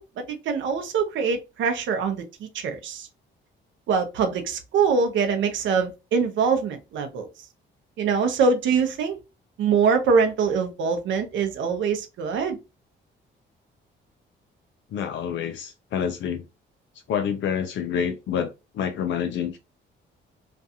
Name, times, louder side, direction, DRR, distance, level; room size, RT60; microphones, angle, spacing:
voice 1, 0.0-3.1 3.9-7.3 8.0-9.2 9.6-12.6, right 5 dB, 75° right, 0.6 m, -24 dB
voice 2, 14.9-16.4 17.1-19.6, left 8 dB, 70° left, 0.5 m, -28 dB
2.5 x 2.3 x 2.7 m
cardioid pair, 90°, 20 cm